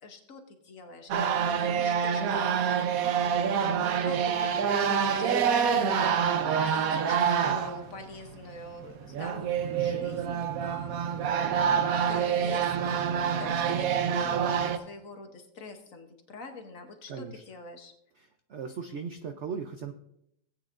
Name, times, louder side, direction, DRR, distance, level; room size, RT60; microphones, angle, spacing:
voice 1, 0.0-3.5 3.7-5.9 6.5-11.0 11.5-17.9, left 3 dB, 50° left, 5 dB, 1.2 m, -46 dB
sound 1, 1.1-7.9 8.3-8.4 8.6-14.8, right 7 dB, 65° right, 0.9 m, -27 dB
voice 2, 17.1-17.4 18.2-19.9, right 6 dB, 80° right, 6 dB, 0.6 m, -38 dB
17.5 x 8.9 x 2.5 m, 0.76 s
omnidirectional pair, 2.1 m